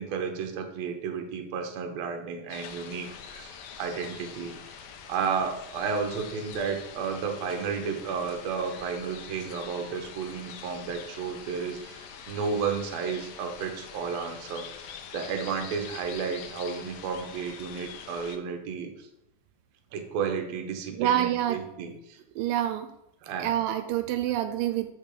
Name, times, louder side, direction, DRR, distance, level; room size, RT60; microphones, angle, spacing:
voice 1, 0.0-19.1 19.9-22.2 23.2-23.5, right 6 dB, 65° right, 4 dB, 1.8 m, -32 dB
sound 1, 2.5-18.4, left 7 dB, 85° left, 1.6 m, -44 dB
voice 2, 21.0-21.6 22.4-22.9 23.4-24.9, right 12 dB, 85° right, 9 dB, 2.2 m, -27 dB
5.4 x 5.3 x 6.6 m, 0.81 s
omnidirectional pair, 4.0 m